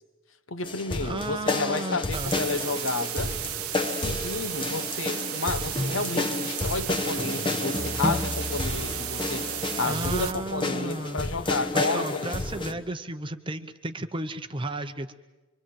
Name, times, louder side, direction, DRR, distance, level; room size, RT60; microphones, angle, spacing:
voice 1, 0.5-3.4 3.9-9.5 9.8-12.3 12.5-12.8, left 3 dB, 60° left, 1.1 m, -31 dB
sound 1, 0.6-12.7, left 2 dB, 20° left, 1.1 m, -31 dB
voice 2, 1.0-2.3 9.8-11.2 11.7-15.1, right 2 dB, 25° right, 0.8 m, -33 dB
sound 2, 2.1-10.3, right 14 dB, 85° right, 0.8 m, -34 dB
24.5 x 24.0 x 7.6 m
head